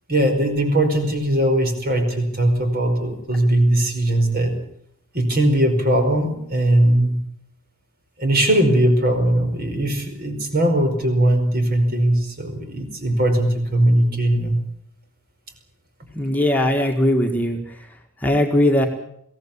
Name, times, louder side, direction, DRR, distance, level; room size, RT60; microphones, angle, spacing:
voice 1, 0.1-4.5 5.1-7.2 8.2-14.6, right 1 dB, 45° right, 5 dB, 5.1 m, -19 dB
voice 2, 16.1-17.9 18.2-18.9, left 1 dB, 10° left, 2 dB, 1.8 m, -19 dB
23.0 x 17.0 x 8.6 m, 0.71 s
head